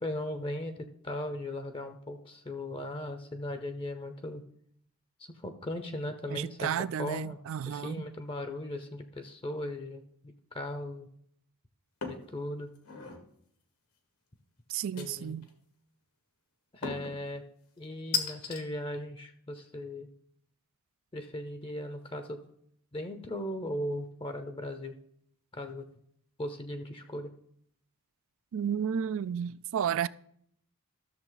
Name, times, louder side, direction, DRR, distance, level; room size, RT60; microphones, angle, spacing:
voice 1, 0.0-4.4 5.3-6.7 7.0-7.4 7.7-11.1 12.0-12.7 14.9-15.4 16.7-17.4 17.8-20.1 21.1-22.4 22.9-24.9 25.5-25.9 26.4-27.3, left 1 dB, 25° left, 0.7 m, -38 dB
voice 2, 6.3-8.0 14.7-15.5 28.5-30.1, right 8 dB, 60° right, 0.3 m, -32 dB
sound 1, 12.0-12.3 12.8-13.2 15.0-15.5 16.8-17.2 18.1-18.6, left 6 dB, 75° left, 1.6 m, -35 dB
13.5 x 6.9 x 4.0 m
head